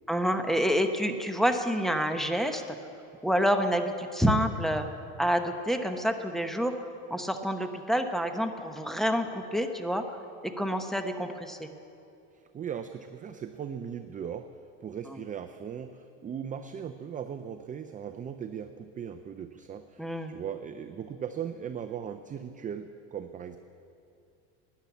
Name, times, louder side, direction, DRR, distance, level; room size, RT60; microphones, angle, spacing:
voice 1, 0.1-2.6 3.2-4.8 5.2-6.7 7.1-10.0 10.4-11.7 15.1-15.2 20.0-20.3, equal, ahead, 6 dB, 0.9 m, -28 dB
voice 2, 12.5-14.5 14.8-23.6, right 8 dB, 20° right, 8 dB, 0.5 m, -38 dB
13.0 x 10.5 x 8.3 m, 2.6 s
supercardioid pair, 115°, 38 cm